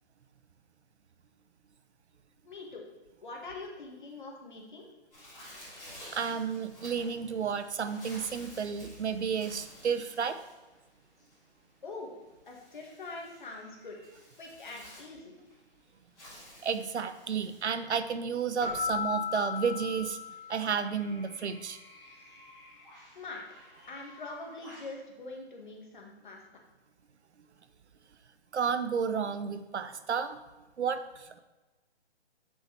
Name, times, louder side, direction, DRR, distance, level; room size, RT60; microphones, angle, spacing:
voice 1, 2.4-2.9 3.2-4.9 11.8-12.1 12.5-14.0 14.4-15.3 23.2-23.4 23.9-26.4, left 3 dB, 45° left, 0 dB, 1.8 m, -43 dB
Bird, 5.1-25.0, left 1 dB, ahead, 0.7 m, -54 dB
voice 2, 6.1-10.4 16.6-20.2 20.5-21.8 28.5-30.4 30.8-31.4, right 6 dB, 85° right, 11 dB, 0.8 m, -32 dB
Keyboard (musical), 18.6-21.0, left 6 dB, 15° left, 1.1 m, -36 dB
8.1 x 6.4 x 4.4 m, 1.1 s
hypercardioid pair, 175°, 33 cm